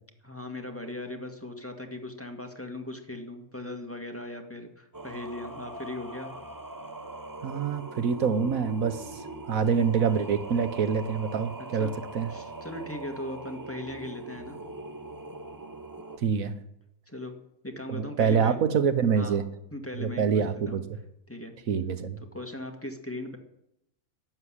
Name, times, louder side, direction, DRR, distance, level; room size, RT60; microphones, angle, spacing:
voice 1, 0.2-6.3 11.8-11.9 12.3-14.6 17.1-17.4 17.6-18.6 19.2-19.4 19.7-20.8 21.3-21.6 22.3-23.4, left 1 dB, 10° left, 4 dB, 1.7 m, -38 dB
Singing, 4.9-16.2, right 2 dB, 15° right, 0.8 m, -41 dB
voice 2, 7.4-12.3 16.2-16.5 17.9-19.4 19.9-20.8 21.7-22.2, right 6 dB, 70° right, 11 dB, 1.4 m, -26 dB
12.0 x 8.1 x 9.9 m, 0.78 s
omnidirectional pair, 1.5 m